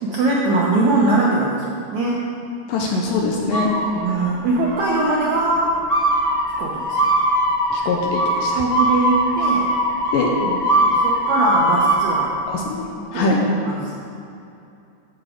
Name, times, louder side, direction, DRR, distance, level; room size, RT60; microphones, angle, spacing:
voice 1, 0.0-1.6 1.9-2.2 3.9-5.7 6.6-7.0 8.5-9.7 10.4-12.3 13.1-13.3 13.6-13.9, right 2 dB, 75° right, -4 dB, 1.7 m, -21 dB
voice 2, 2.7-3.7 7.7-8.6 10.1-10.3 12.5-12.8 13.1-13.4, left 3 dB, 75° left, 0 dB, 2.2 m, -22 dB
sound 1, 3.5-4.3 4.6-5.2 5.9-12.2, right 1 dB, 55° left, 0.4 m, -20 dB
13.0 x 7.0 x 5.0 m, 2.7 s
omnidirectional pair, 4.5 m